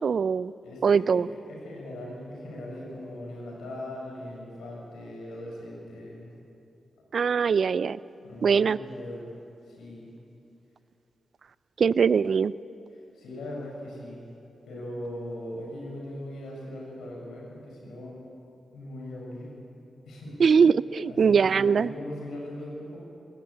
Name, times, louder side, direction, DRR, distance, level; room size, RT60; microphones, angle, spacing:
voice 1, 0.0-0.5 0.8-1.3 7.1-8.0 8.4-8.8 11.8-12.5 20.4-21.9, right 6 dB, 65° right, 19 dB, 0.4 m, -22 dB
voice 2, 0.6-6.3 8.2-9.2 9.7-10.1 13.2-14.2 14.7-18.2 18.7-19.5 20.1-20.4 21.0-23.0, left 1 dB, 85° left, -2 dB, 6.8 m, -39 dB
20.5 x 19.0 x 8.7 m, 2.8 s
supercardioid pair, 40°, 0 cm